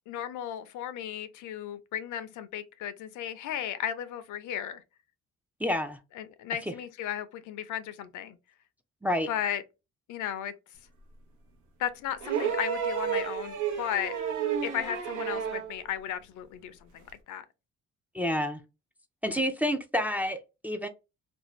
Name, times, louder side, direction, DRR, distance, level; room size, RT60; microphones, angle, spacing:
voice 1, 0.1-4.8 6.2-8.4 9.3-9.6 10.1-10.5 11.8-14.2 14.6-17.4, left 10 dB, 75° left, 0.5 m, -35 dB
voice 2, 5.6-6.0 9.0-9.3 18.1-18.6 19.2-20.9, equal, 5° right, 0.4 m, -29 dB
sound 1, 12.2-15.8 17.1-17.2, right 7 dB, 80° right, 0.8 m, -31 dB
2.6 x 2.2 x 3.0 m
cardioid pair, 90°, 30 cm